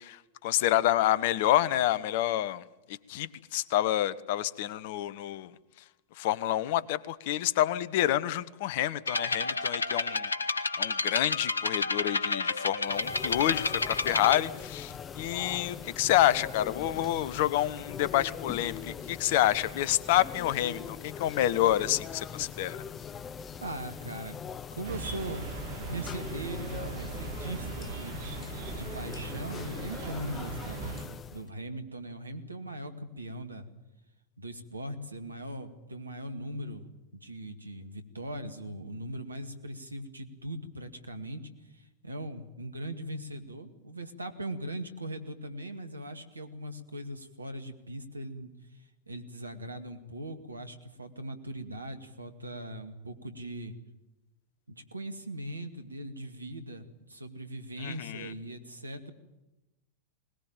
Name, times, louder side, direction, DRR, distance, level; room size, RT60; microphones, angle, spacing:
voice 1, 0.0-5.5 6.2-10.3 10.8-22.8 57.8-58.3, left 13 dB, 50° left, 18 dB, 1.0 m, -28 dB
sound 1, 9.1-14.4, left 3 dB, 80° left, 1.1 m, -30 dB
sound 2, 12.9-31.5, left 7 dB, 25° left, 0.7 m, -42 dB
voice 2, 23.6-24.4 24.7-25.5 25.9-31.0 31.3-33.7 34.4-36.8 37.2-53.8 54.7-59.1, right 1 dB, 80° right, 8 dB, 2.2 m, -40 dB
sound 3, 24.8-31.0, right 4 dB, 55° right, 3.0 m, -39 dB
21.0 x 20.0 x 9.2 m, 1.0 s
figure-of-eight pair, 90°, 0 cm